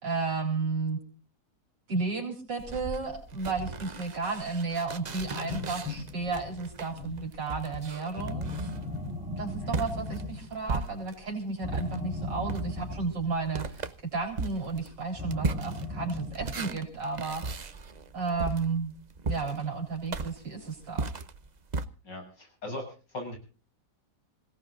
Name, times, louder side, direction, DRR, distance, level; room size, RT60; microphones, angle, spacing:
voice 1, 0.0-1.0 1.9-8.5 9.4-17.4 18.1-18.9 19.3-21.1, right 4 dB, 75° right, 1 dB, 4.6 m, -33 dB
sound 1, 2.6-11.3 11.7-21.9, right 4 dB, 45° right, 0.5 m, -37 dB
sound 2, 5.0-7.4 8.2-10.7 11.6-13.7 15.1-16.8, left 2 dB, 5° right, 4.5 m, -38 dB
voice 2, 22.0-23.4, left 1 dB, 70° left, 2 dB, 8.1 m, -39 dB
27.0 x 17.5 x 2.5 m, 0.36 s
omnidirectional pair, 2.0 m